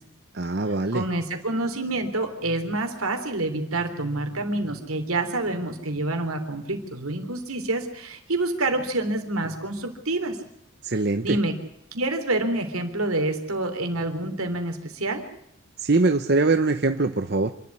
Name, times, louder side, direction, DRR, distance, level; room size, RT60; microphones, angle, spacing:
voice 1, 0.3-1.1 10.8-11.4 15.8-17.5, right 3 dB, 50° right, 8 dB, 0.8 m, -22 dB
voice 2, 0.9-10.4 11.2-11.5 11.9-15.2, right 2 dB, 85° right, 6 dB, 3.4 m, -27 dB
26.5 x 12.0 x 9.7 m, 0.79 s
head